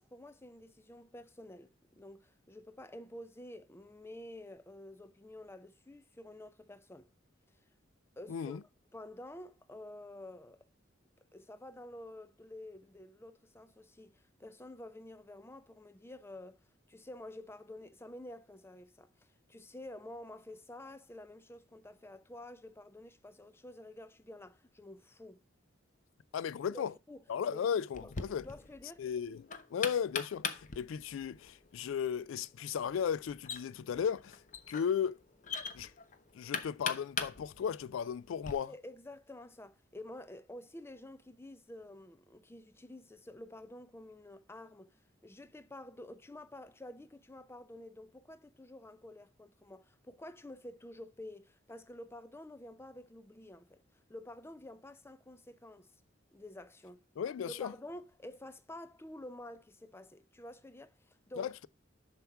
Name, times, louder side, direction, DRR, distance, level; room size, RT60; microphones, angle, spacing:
voice 1, 0.0-7.1 8.2-8.6 8.9-10.7 11.3-16.6 16.9-25.4 26.7-27.2 27.5-28.1 28.4-29.0 38.6-53.8 54.1-55.9 56.3-57.0 57.5-61.7, left 1 dB, 15° left, 0.5 m, -50 dB
voice 2, 8.3-8.6 26.3-26.9 27.3-28.5 29.0-34.4 34.7-35.2 35.7-35.9 36.3-38.7 57.2-57.7 61.4-61.7, left 7 dB, 85° left, 0.3 m, -35 dB
Knock, 27.9-38.5, left 6 dB, 40° left, 0.8 m, -42 dB
7.0 x 5.9 x 4.4 m
head